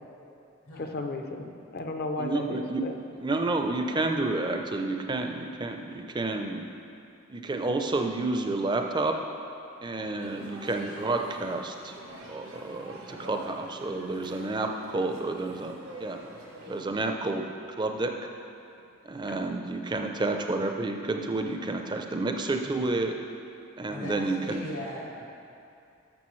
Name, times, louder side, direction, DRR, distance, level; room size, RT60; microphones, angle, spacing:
voice 1, 0.8-2.9 3.5-3.6 19.3-19.4, left 2 dB, 50° left, 4 dB, 0.6 m, -34 dB
voice 2, 2.2-2.8 3.1-6.6 7.3-9.2 9.8-11.9 12.3-15.7 16.0-16.2 16.7-17.5 17.8-18.1 19.0-23.1 23.8-24.7, right 2 dB, 20° right, 4 dB, 0.4 m, -30 dB
sound 1, 10.2-16.8, right 1 dB, 75° right, 1.1 m, -45 dB
voice 3, 23.9-25.2, left 1 dB, 80° left, -5 dB, 1.9 m, -39 dB
11.5 x 6.7 x 3.1 m, 2.6 s
head